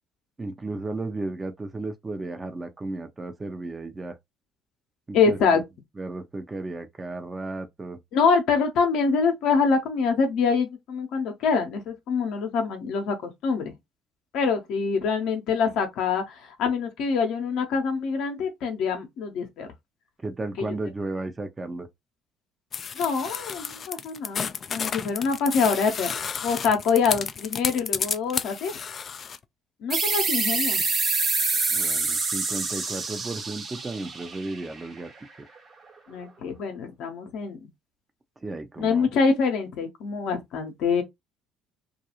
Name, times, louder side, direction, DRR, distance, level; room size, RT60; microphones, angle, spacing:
voice 1, 0.4-4.2 5.1-5.6 6.0-8.0 20.2-21.9 31.7-35.1 38.4-39.1, right 2 dB, 25° right, 0.7 m, -34 dB
voice 2, 5.1-5.6 8.1-13.8 14.3-19.7 20.6-20.7 22.9-28.8 29.8-30.8 36.1-37.7 38.8-41.0, left 5 dB, 65° left, 0.7 m, -25 dB
sound 1, 22.7-29.4, left 6 dB, 45° left, 0.3 m, -32 dB
sound 2, 29.9-35.2, right 4 dB, 40° right, 1.1 m, -27 dB
2.4 x 2.3 x 2.9 m
hypercardioid pair, 55°, 0 cm